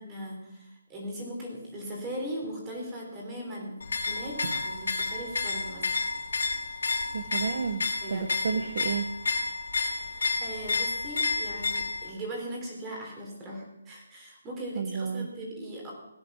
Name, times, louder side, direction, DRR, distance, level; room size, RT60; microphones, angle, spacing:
voice 1, 0.0-5.9 8.0-8.6 9.9-15.9, right 1 dB, 10° right, -1 dB, 3.5 m, -39 dB
sound 1, 3.8-12.1, left 4 dB, 70° left, 3.9 m, -31 dB
voice 2, 7.1-7.8 8.1-9.0 14.8-15.3, right 6 dB, 50° right, 10 dB, 0.8 m, -31 dB
17.0 x 10.0 x 6.2 m, 0.91 s
hypercardioid pair, 170°, 0 cm